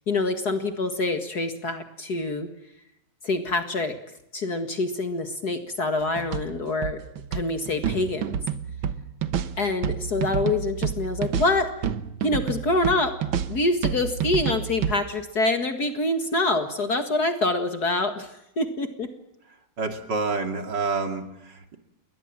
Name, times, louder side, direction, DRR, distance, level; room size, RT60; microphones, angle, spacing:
voice 1, 0.1-2.5 3.2-3.9 4.3-7.0 7.3-8.4 9.6-11.7 12.2-13.1 13.5-19.1, left 2 dB, 55° left, 7 dB, 2.4 m, -26 dB
sound 1, 6.0-15.0, right 8 dB, 85° right, 2.0 m, -29 dB
voice 2, 19.8-21.8, right 4 dB, 65° right, 6 dB, 3.1 m, -28 dB
29.5 x 22.0 x 7.5 m, 0.84 s
omnidirectional pair, 2.1 m